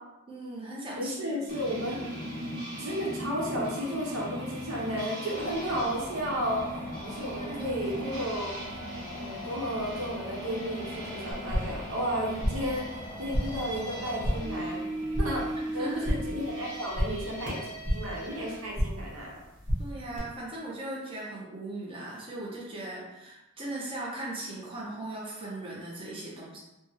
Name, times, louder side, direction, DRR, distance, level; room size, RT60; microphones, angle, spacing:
voice 1, 0.3-1.4 1.7-2.3 7.4-7.9 15.5-16.1 19.8-26.6, right 2 dB, 25° right, -5 dB, 0.6 m, -39 dB
voice 2, 0.9-2.0 2.8-6.6 7.0-8.5 9.1-12.9 13.2-14.9 15.2-15.4 15.7-17.6 17.9-19.4, equal, 85° right, -3 dB, 0.8 m, -33 dB
sound 1, 1.5-18.6, right 1 dB, 45° right, 1.2 m, -39 dB
sound 2, 5.3-14.4, left 2 dB, 25° left, 0.3 m, -43 dB
sound 3, 11.3-11.9 12.1-12.8 13.0-13.7 14.0-14.6 14.9-15.5 15.8-16.4 16.7-18.2 18.5-19.1 19.4-20.2, equal, 5° right, 1.1 m, -32 dB
3.3 x 2.1 x 3.0 m, 0.96 s
head